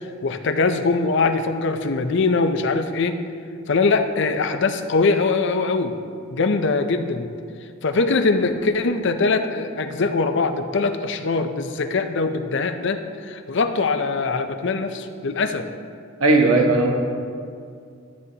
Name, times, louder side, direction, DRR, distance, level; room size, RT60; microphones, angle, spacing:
voice 1, 0.2-3.2 3.7-6.0 6.3-7.3 7.8-15.7, left 3 dB, 60° left, 8 dB, 0.6 m, -22 dB
voice 2, 16.2-17.0, right 2 dB, 90° right, 1 dB, 1.4 m, -16 dB
13.0 x 9.5 x 2.9 m, 2.3 s
head